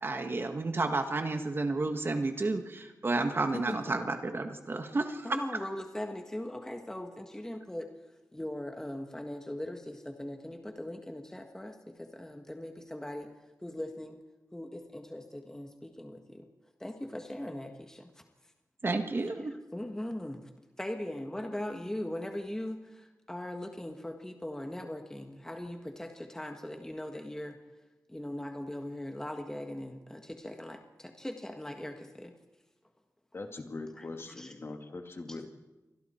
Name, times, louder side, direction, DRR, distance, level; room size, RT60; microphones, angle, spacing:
voice 1, 0.0-5.4 18.8-19.5, right 3 dB, 40° right, 6 dB, 1.7 m, -31 dB
voice 2, 3.5-4.0 5.2-7.9 8.3-13.3 13.6-14.2 14.5-16.4 16.8-18.1 19.7-20.5 20.8-27.6 28.1-32.3 34.4-34.5, left 1 dB, 10° left, 4 dB, 1.6 m, -39 dB
voice 3, 33.3-35.5, left 3 dB, 40° left, 4 dB, 2.4 m, -41 dB
29.0 x 24.5 x 4.5 m, 1.1 s
wide cardioid pair, 110°, 6 cm